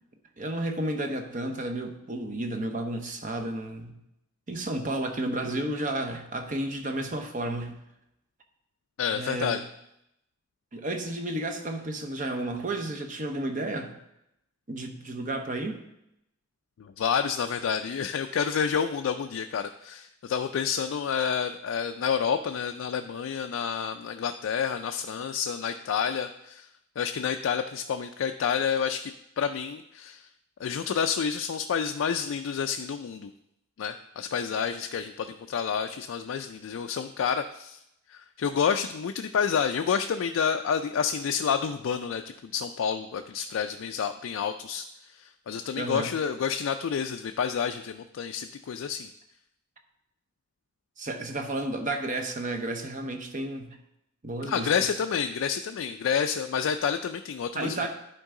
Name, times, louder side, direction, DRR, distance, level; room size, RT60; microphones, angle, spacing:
voice 1, 0.4-4.0 4.5-7.8 9.1-9.6 10.7-13.9 14.7-15.8 45.8-46.1 51.0-53.8 54.2-54.9 57.5-57.9, right 1 dB, 40° right, 5 dB, 0.9 m, -32 dB
voice 2, 9.0-9.6 16.8-26.7 27.0-30.3 30.6-33.3 33.8-37.8 38.1-49.1 54.4-57.9, left 7 dB, 85° left, 6 dB, 0.4 m, -29 dB
11.0 x 4.6 x 3.7 m, 0.82 s
head